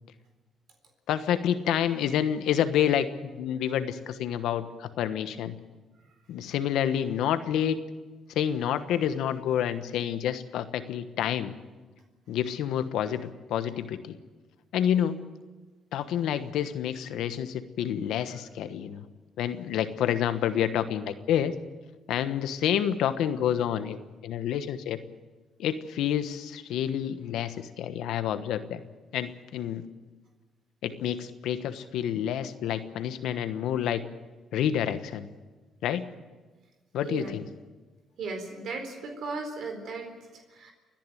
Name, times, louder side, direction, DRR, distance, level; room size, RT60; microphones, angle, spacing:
voice 1, 1.1-5.6 6.3-7.8 8.3-11.6 12.3-14.2 14.7-15.2 15.9-19.0 19.4-21.5 22.1-25.0 25.6-28.8 29.1-29.8 30.8-34.0 34.5-35.3 35.8-36.0 36.9-37.4, left 9 dB, 85° left, 11 dB, 1.2 m, -28 dB
voice 2, 37.0-37.4 38.2-40.7, right 4 dB, 70° right, 4 dB, 4.2 m, -36 dB
29.5 x 10.5 x 9.2 m, 1.3 s
cardioid pair, 90°, 0 cm